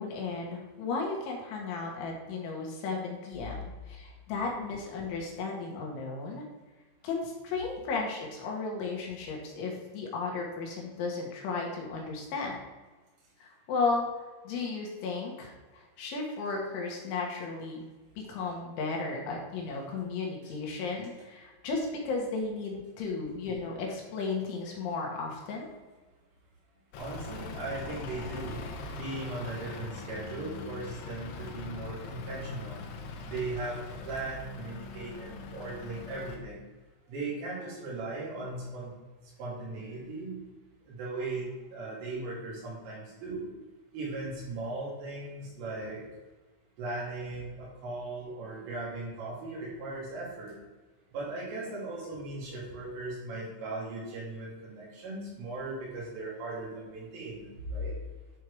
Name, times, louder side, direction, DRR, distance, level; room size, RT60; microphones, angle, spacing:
voice 1, 0.0-3.6 3.9-6.4 7.0-12.6 13.4-14.1 14.5-17.8 18.2-25.7, left 4 dB, 75° left, -1 dB, 3.7 m, -34 dB
Truck / Idling, 26.9-36.4, left 4 dB, 90° left, 3.7 m, -42 dB
voice 2, 27.0-28.6 28.9-32.8 33.2-36.6 37.1-38.9 39.4-40.4 40.9-43.5 43.9-46.0 46.8-50.5 51.1-58.0, right 2 dB, 75° right, -6 dB, 5.4 m, -38 dB
11.5 x 4.6 x 4.8 m, 1.3 s
omnidirectional pair, 5.8 m